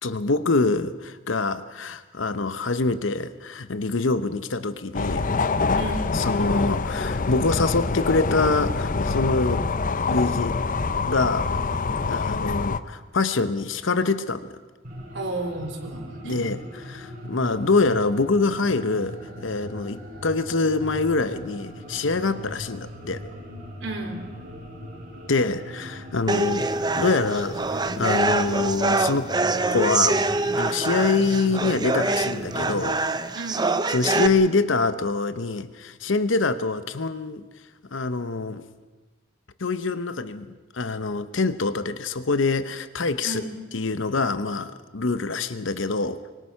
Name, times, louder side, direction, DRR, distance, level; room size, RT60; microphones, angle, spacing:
voice 1, 0.0-5.3 6.1-9.7 10.0-10.6 11.1-11.5 12.1-14.6 16.2-23.2 25.3-26.7 27.0-29.3 29.7-30.2 30.6-33.0 33.9-37.4 37.9-38.6 39.6-43.4 43.7-46.2, left 3 dB, 70° left, 12 dB, 0.9 m, -25 dB
sound 1, 4.9-12.8, left 4 dB, 45° left, 0.7 m, -25 dB
voice 2, 5.8-6.1 15.1-16.4 23.8-24.2 33.3-33.7 43.2-43.4, right 2 dB, 65° right, 2 dB, 4.2 m, -32 dB
sound 2, 14.8-32.9, equal, 45° right, 7.6 m, -40 dB
sound 3, 26.3-34.3, right 3 dB, 20° right, 0.8 m, -25 dB
24.5 x 24.0 x 5.8 m, 1.3 s
head